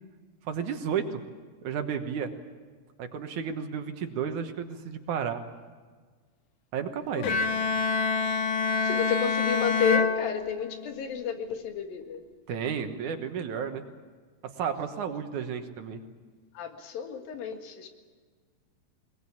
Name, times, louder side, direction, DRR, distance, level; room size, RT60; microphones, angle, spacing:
voice 1, 0.5-1.2 1.6-2.3 3.0-5.4 6.7-7.2 12.5-13.8 14.6-16.0, right 7 dB, 65° right, 7 dB, 2.5 m, -32 dB
Bowed string instrument, 7.2-11.0, left 4 dB, 65° left, 2.5 m, -27 dB
voice 2, 8.8-12.2 16.6-17.9, left 7 dB, 90° left, 5 dB, 3.6 m, -31 dB
22.0 x 21.0 x 8.5 m, 1.5 s
omnidirectional pair, 4.0 m